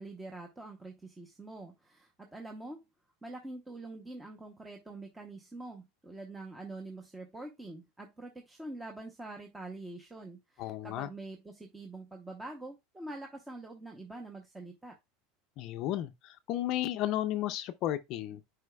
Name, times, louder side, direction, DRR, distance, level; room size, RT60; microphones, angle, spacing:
voice 1, 0.0-2.9 3.2-15.0, right 2 dB, 10° right, 0.8 m, -45 dB
voice 2, 10.6-11.1 15.6-18.4, left 13 dB, 45° left, 0.5 m, -33 dB
9.6 x 4.8 x 2.3 m
supercardioid pair, 165°, 0 cm